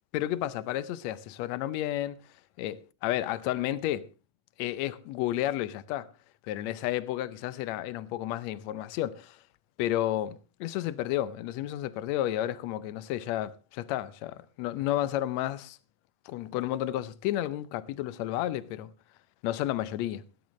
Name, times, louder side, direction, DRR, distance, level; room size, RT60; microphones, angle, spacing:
voice 1, 0.1-2.2 2.6-4.1 4.6-6.1 6.4-9.4 9.8-15.8 16.3-18.9 19.4-20.2, left 13 dB, 75° left, 1.8 m, -31 dB
18.5 x 12.0 x 3.2 m
omnidirectional pair, 3.5 m